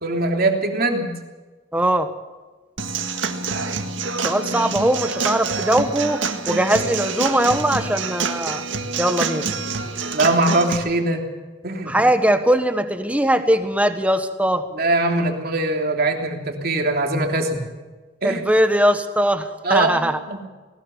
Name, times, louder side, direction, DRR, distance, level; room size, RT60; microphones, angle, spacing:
voice 1, 0.0-1.2 10.1-11.2 11.6-12.1 14.7-17.7 18.2-18.4 19.6-20.4, right 2 dB, 55° right, 2 dB, 3.2 m, -22 dB
voice 2, 1.7-2.1 4.2-6.2 6.5-8.6 9.0-9.5 11.9-14.7 18.2-20.2, right 1 dB, 10° right, 8 dB, 1.4 m, -20 dB
Human voice / Acoustic guitar / Drum, 2.8-10.8, right 4 dB, 85° right, 1.9 m, -26 dB
20.0 x 19.0 x 7.2 m, 1.3 s
head